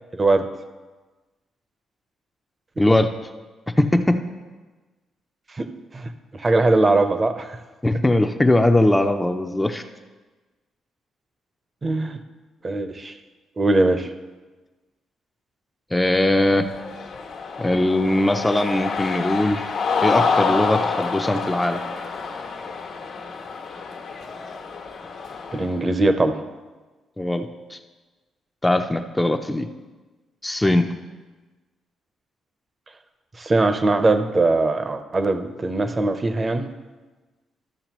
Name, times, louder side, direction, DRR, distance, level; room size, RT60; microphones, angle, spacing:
voice 1, 0.1-0.4 5.5-5.7 5.9-7.6 11.8-12.2 12.6-13.1 13.6-14.1 25.5-26.4 33.4-36.7, right 2 dB, 30° right, 9 dB, 0.7 m, -21 dB
voice 2, 2.8-3.1 3.8-4.2 7.8-9.8 15.9-16.7 17.6-19.6 20.0-21.8 27.2-27.8 28.6-29.7 30.4-30.9, left 1 dB, 10° left, 5 dB, 0.5 m, -20 dB
Cheering, 16.5-25.7, left 5 dB, 75° left, 1.3 m, -27 dB
13.0 x 6.4 x 3.0 m, 1.3 s
cardioid pair, 90°, 0 cm